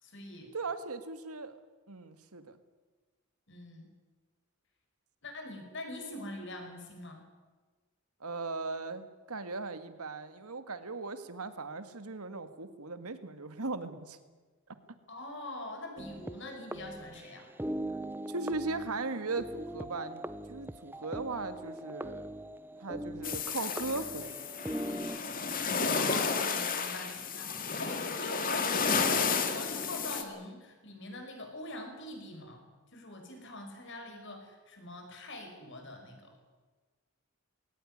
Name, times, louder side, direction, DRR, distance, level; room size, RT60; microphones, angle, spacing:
voice 1, 0.0-0.5 3.5-3.9 5.2-7.2 15.1-17.5 25.8-32.6 32.9-36.3, left 1 dB, 55° left, 4 dB, 5.6 m, -43 dB
voice 2, 0.5-1.6 1.9-2.6 8.2-14.2 18.3-22.3 22.8-24.5, right 3 dB, 85° right, 10 dB, 1.9 m, -38 dB
sound 1, 16.0-25.2, right 1 dB, 10° right, 0.6 m, -41 dB
sound 2, 23.2-30.2, left 5 dB, 40° left, 2.3 m, -32 dB
21.0 x 18.5 x 9.9 m, 1.3 s
head